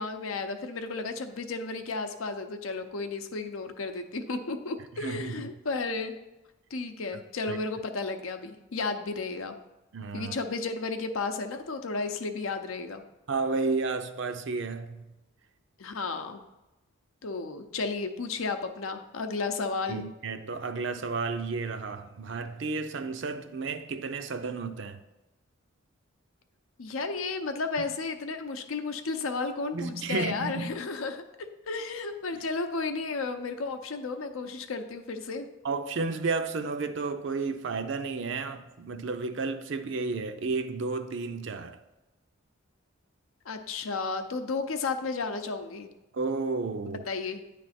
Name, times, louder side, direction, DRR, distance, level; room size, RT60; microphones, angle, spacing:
voice 1, 0.0-6.2 6.7-9.6 10.1-13.0 15.8-16.4 17.2-20.0 26.8-31.2 31.7-35.5 43.5-45.9 47.1-47.4, left 4 dB, 80° left, 0.6 m, -33 dB
voice 2, 5.0-5.5 7.5-7.6 9.9-10.3 13.3-15.1 19.9-25.0 29.7-30.8 32.3-32.4 35.6-41.8 46.1-47.0, right 4 dB, 60° right, 0.5 m, -32 dB
9.7 x 3.3 x 4.2 m
head